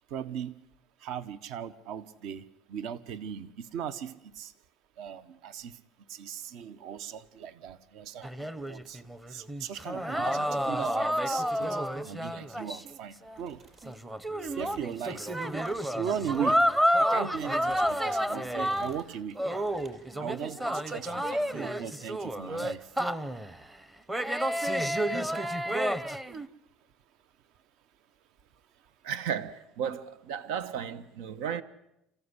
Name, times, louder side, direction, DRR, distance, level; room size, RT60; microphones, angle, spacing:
voice 1, 0.1-0.6 1.0-2.4 2.7-4.5 5.0-5.8 6.1-8.3 8.7-9.0 9.3-11.7 12.0-13.6 14.4-15.3 16.0-16.6 17.0-19.4 20.2-22.8, right 8 dB, 60° right, 1.2 m, -38 dB
sound 1, 8.2-13.0 13.3-13.4 13.8-19.0 19.4-23.6 24.1-26.5, equal, 10° right, 0.9 m, -30 dB
sound 2, 13.3-14.0 14.3-14.9 15.3-15.8 16.1-16.7 17.2-18.0 18.5-19.1 19.5-20.0, right 4 dB, 30° right, 5.6 m, -57 dB
voice 2, 29.0-31.6, right 8 dB, 85° right, 1.1 m, -34 dB
27.5 x 15.5 x 9.9 m
cardioid pair, 150°, 0 cm